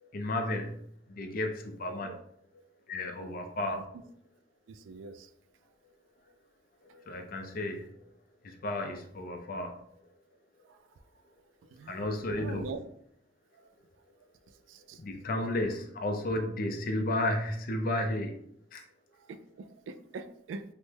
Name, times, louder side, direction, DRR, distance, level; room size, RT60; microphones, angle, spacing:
voice 1, 0.0-0.7 1.1-2.1 2.9-3.9 6.9-8.0 8.4-9.8 11.9-12.7 15.0-18.4 18.7-18.8, left 1 dB, 50° left, 5 dB, 0.4 m, -33 dB
voice 2, 4.7-5.3 10.7-10.8 11.7-12.1 12.4-12.8 14.7-15.0 19.3-20.6, right 4 dB, 80° right, 10 dB, 0.3 m, -43 dB
3.2 x 2.1 x 3.2 m, 0.68 s
head